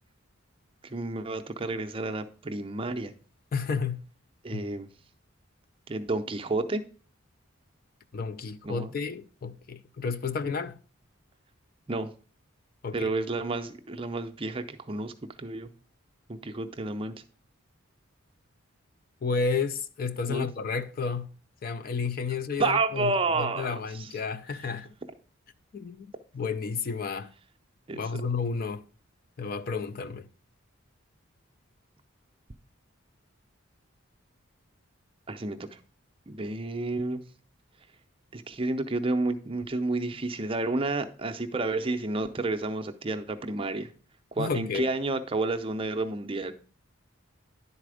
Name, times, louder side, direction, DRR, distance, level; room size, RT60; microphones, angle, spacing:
voice 1, 0.8-3.1 4.4-4.9 5.9-6.8 8.6-8.9 11.9-12.1 12.9-15.1 15.4-15.7 16.3-17.1 20.3-20.5 22.6-24.1 27.9-28.2 35.3-35.8 36.3-37.2 38.3-43.9 44.3-46.5, right 3 dB, 25° right, 0.5 m, -30 dB
voice 2, 3.5-4.0 4.5-4.6 8.1-10.8 12.8-13.1 19.2-21.3 21.6-24.9 25.7-26.1 26.3-27.3 27.9-28.8 29.4-30.3 44.4-44.9, left 5 dB, 45° left, 0.4 m, -31 dB
10.5 x 4.2 x 4.9 m
head